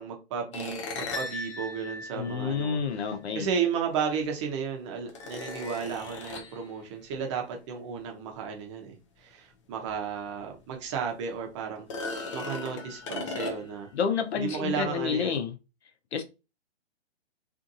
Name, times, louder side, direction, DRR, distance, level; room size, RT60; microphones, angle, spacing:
voice 1, 0.0-2.8 3.3-11.9 12.3-13.9 14.3-15.4, right 6 dB, 25° right, 0.7 m, -33 dB
sound 1, 0.5-3.0 4.2-4.3 5.1-6.6 9.9-10.0 10.5-10.6 11.8-13.9, left 3 dB, 30° left, 0.4 m, -37 dB
voice 2, 2.1-3.5 13.9-15.5 16.1-16.2, left 6 dB, 70° left, 0.7 m, -29 dB
2.6 x 2.5 x 2.6 m
hypercardioid pair, 145°, 33 cm